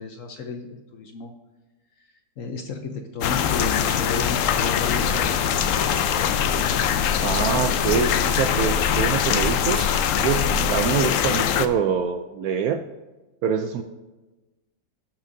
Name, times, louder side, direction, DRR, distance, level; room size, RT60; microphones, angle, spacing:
voice 1, 0.0-1.3 2.4-5.4, left 4 dB, 60° left, 5 dB, 0.9 m, -32 dB
sound 1, 3.2-11.7, left 9 dB, 85° left, 0.7 m, -22 dB
sound 2, 4.8-10.7, right 1 dB, 45° right, 3.8 m, -36 dB
voice 2, 7.2-12.8 13.4-13.8, right 7 dB, 70° right, 7 dB, 0.9 m, -25 dB
17.0 x 6.0 x 2.6 m, 1.1 s
omnidirectional pair, 1.9 m